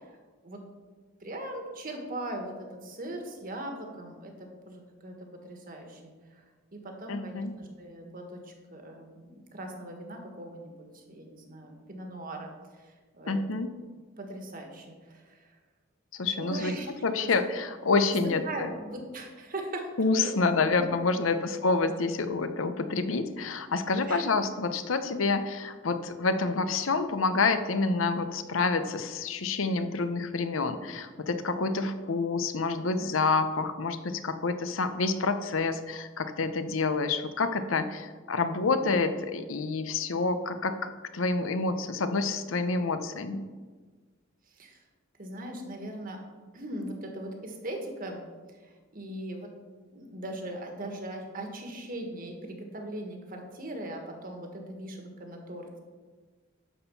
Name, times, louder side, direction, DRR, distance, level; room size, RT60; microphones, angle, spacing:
voice 1, 1.2-6.4 6.7-13.4 14.2-15.6 16.4-16.9 17.2-17.3 18.1-19.9 20.2-20.8 21.1-21.2 24.0-24.2 44.5-44.8 45.2-46.2 46.5-48.2 48.5-49.5 49.9-55.8, right 1 dB, 45° right, 3 dB, 1.6 m, -40 dB
voice 2, 7.1-7.5 13.3-13.7 16.1-16.7 17.0-18.7 20.0-43.4, left 3 dB, 80° left, 10 dB, 0.7 m, -28 dB
11.0 x 4.4 x 6.9 m, 1.4 s
head